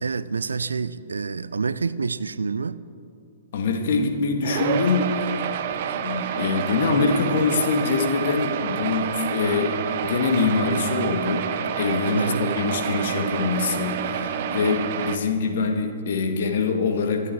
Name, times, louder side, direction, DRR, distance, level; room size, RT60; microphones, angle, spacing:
voice 1, 0.0-2.8 12.2-12.5, right 4 dB, 70° right, 16 dB, 0.5 m, -27 dB
voice 2, 3.5-5.4 6.0-9.7 10.0-11.4 11.8-17.3, left 4 dB, 50° left, 4 dB, 1.9 m, -24 dB
sound 1, 4.4-15.2, right 8 dB, 45° right, 0.8 m, -28 dB
26.0 x 8.8 x 4.7 m, 2.5 s
figure-of-eight pair, 115°, 0 cm